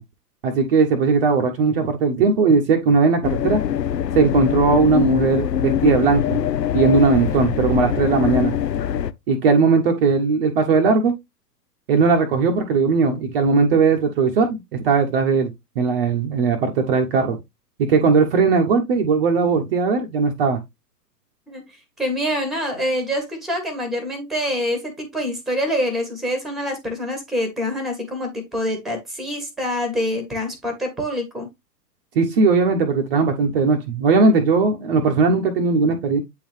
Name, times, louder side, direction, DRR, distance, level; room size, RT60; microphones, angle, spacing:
voice 1, 0.4-3.6 4.1-6.4 6.7-8.5 9.3-11.1 11.9-14.6 14.8-17.4 17.8-20.6 32.1-36.2, right 4 dB, 35° right, 1.0 m, -18 dB
sound 1, 3.2-9.1, left 9 dB, 80° left, 0.6 m, -23 dB
voice 2, 22.0-31.5, equal, ahead, 1.4 m, -25 dB
8.4 x 3.9 x 3.2 m
figure-of-eight pair, 115°, 49 cm